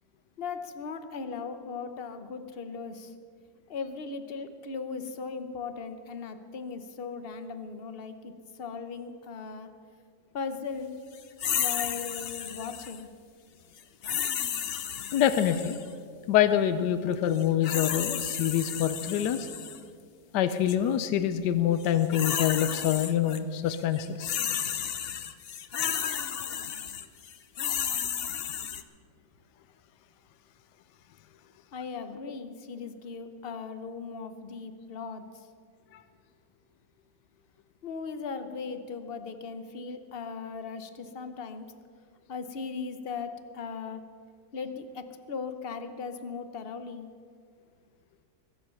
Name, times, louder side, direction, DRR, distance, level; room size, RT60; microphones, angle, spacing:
voice 1, 0.4-3.1 3.7-8.3 8.6-9.7 10.3-10.9 11.5-13.1 31.7-35.5 37.8-41.7 42.3-44.0 44.5-47.1, left 5 dB, 40° left, 9 dB, 1.0 m, -38 dB
sound 1, 11.4-13.0 14.0-15.9 17.3-19.8 20.5-20.8 21.8-23.4 23.7-28.8, left 8 dB, 60° left, 0.6 m, -33 dB
voice 2, 15.1-15.8 16.3-19.5 20.3-24.4, left 10 dB, 80° left, 11 dB, 1.3 m, -26 dB
23.0 x 7.9 x 7.0 m, 2.2 s
omnidirectional pair, 1.8 m